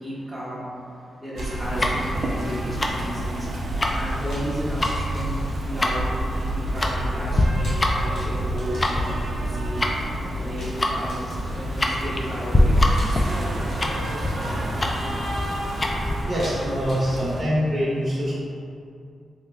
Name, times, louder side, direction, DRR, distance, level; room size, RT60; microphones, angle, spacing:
voice 1, 0.0-0.7 1.2-3.5 3.9-9.9 10.2-14.7, equal, ahead, -10 dB, 1.0 m, -33 dB
sound 1, 1.3-17.4, right 1 dB, 70° right, 0.4 m, -29 dB
sound 2, 1.4-2.9 3.2-3.3 4.3-4.5 4.8-6.3 7.4-9.5 10.6-11.8 13.0-14.9 16.4-17.8, left 1 dB, 80° left, 1.0 m, -46 dB
Tick-tock, 1.6-16.2, left 1 dB, 30° left, 0.3 m, -25 dB
voice 2, 16.3-18.4, equal, 35° right, -8 dB, 1.0 m, -24 dB
3.2 x 3.1 x 2.3 m, 2.4 s
cardioid pair, 70°, 0 cm